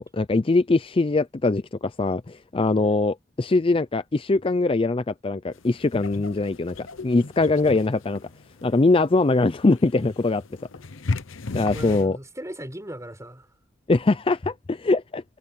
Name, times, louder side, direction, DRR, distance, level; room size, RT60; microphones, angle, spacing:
voice 1, 0.0-8.2 8.6-10.4 11.5-12.2 13.9-15.2, left 3 dB, 25° left, 0.5 m, -22 dB
sound 1, 5.5-12.1, left 3 dB, 80° left, 0.9 m, -35 dB
voice 2, 11.7-13.5, right 1 dB, 15° right, 5.0 m, -38 dB
head